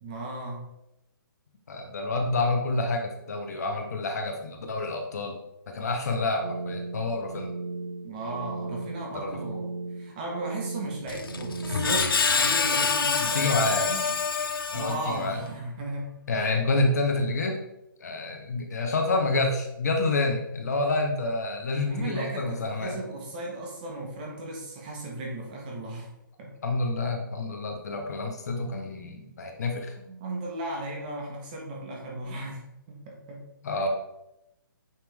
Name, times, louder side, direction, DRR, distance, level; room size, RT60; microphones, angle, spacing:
voice 1, 0.0-0.6 8.0-14.1 14.7-16.2 21.9-26.1 26.4-26.6 30.1-32.6 32.9-33.5 33.8-33.9, right 2 dB, 25° right, -1 dB, 1.3 m, -36 dB
voice 2, 1.7-5.4 5.7-7.5 9.1-9.4 13.2-13.8 14.7-15.4 16.3-17.6 18.0-23.0 26.6-29.9 33.6-33.9, left 2 dB, 45° left, 3 dB, 1.1 m, -28 dB
sound 1, 6.4-12.1, right 3 dB, 55° right, 1.2 m, -36 dB
Screech, 11.1-15.4, left 5 dB, 85° left, 0.7 m, -26 dB
9.1 x 3.7 x 3.5 m, 0.88 s
hypercardioid pair, 170°, 12 cm